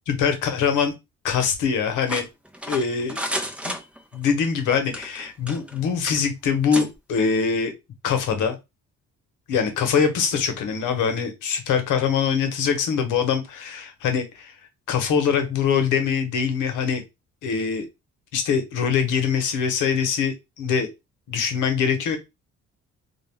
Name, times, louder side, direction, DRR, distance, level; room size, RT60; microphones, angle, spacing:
voice 1, 0.1-0.9 1.2-2.3 2.7-3.2 3.6-3.8 4.1-7.7 8.0-8.6 9.5-14.5 14.9-17.0 17.4-17.9 18.3-20.9 21.3-22.2, left 6 dB, 85° left, 6 dB, 0.9 m, -23 dB
sound 1, 2.1-4.3 4.8-5.8 6.1-6.2 6.7-6.9, equal, 5° right, 0.5 m, -31 dB
2.4 x 2.1 x 3.2 m, 0.23 s
cardioid pair, 90°, 30 cm